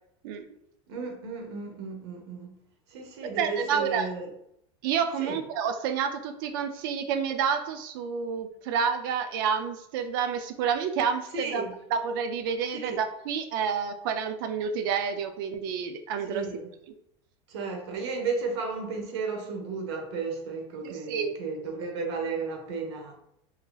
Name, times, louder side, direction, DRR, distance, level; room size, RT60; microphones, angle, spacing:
voice 1, 0.9-2.6 2.9-4.3 5.2-5.4 11.3-11.7 12.7-13.0 16.3-16.7 17.5-23.1, right 4 dB, 65° right, 3 dB, 0.8 m, -34 dB
voice 2, 3.4-4.1 4.8-11.6 11.9-16.4 20.8-21.3, right 7 dB, 45° right, 8 dB, 0.4 m, -29 dB
3.9 x 2.8 x 2.3 m, 0.74 s
supercardioid pair, 175°, 15 cm